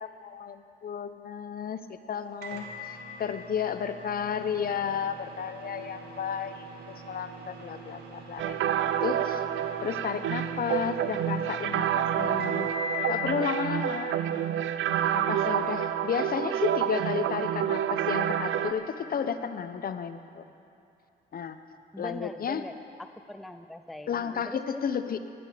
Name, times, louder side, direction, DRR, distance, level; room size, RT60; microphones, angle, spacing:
voice 1, 0.0-6.7 7.0-8.7 9.0-9.5 9.8-12.7 13.1-14.2 15.1-20.5 21.3-21.6 22.0-22.6 24.1-25.2, left 7 dB, 50° left, 10 dB, 0.8 m, -32 dB
Microwave oven, 2.4-13.2, left 1 dB, 55° right, 2.0 m, -42 dB
sound 1, 8.4-18.7, right 10 dB, 75° right, 0.6 m, -28 dB
voice 2, 21.9-22.7 23.0-24.8, left 1 dB, ahead, 9 dB, 0.5 m, -41 dB
16.5 x 11.5 x 5.1 m, 2.6 s
cardioid pair, 90°, 20 cm